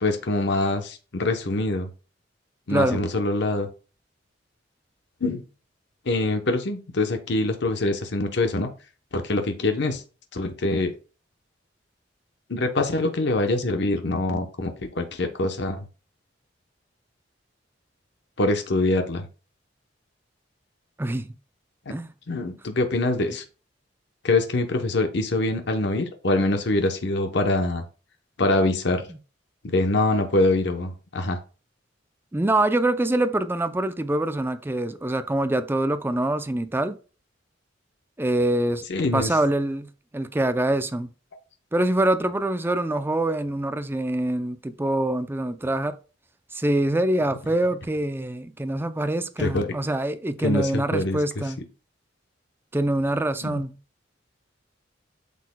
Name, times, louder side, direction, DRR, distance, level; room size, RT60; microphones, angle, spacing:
voice 1, 0.0-1.9 2.7-3.7 5.2-5.4 6.1-8.7 9.1-10.0 10.3-10.9 12.5-15.8 18.4-19.3 22.3-23.4 24.2-27.8 28.4-29.0 29.7-31.4 38.9-39.3 49.4-49.7 50.4-51.2 53.4-53.6, left 2 dB, 60° left, 0.8 m, -24 dB
voice 2, 2.7-3.0 21.0-21.3 21.9-22.1 29.1-29.2 32.3-37.0 38.2-38.9 39.1-41.1 41.7-46.0 46.5-51.7 52.7-53.8, right 1 dB, 10° right, 0.4 m, -25 dB
8.2 x 6.4 x 2.2 m
head